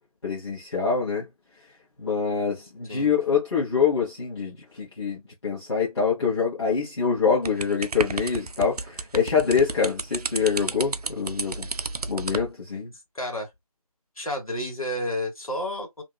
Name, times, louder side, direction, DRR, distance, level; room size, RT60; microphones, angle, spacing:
voice 1, 0.2-1.3 2.0-11.7 12.1-12.9, left 6 dB, 45° left, 1.0 m, -25 dB
sound 1, 7.5-12.5, right 4 dB, 75° right, 0.4 m, -32 dB
voice 2, 13.1-13.5 14.2-16.0, left 1 dB, 65° left, 1.5 m, -30 dB
2.7 x 2.3 x 2.2 m
figure-of-eight pair, 165°, 20 cm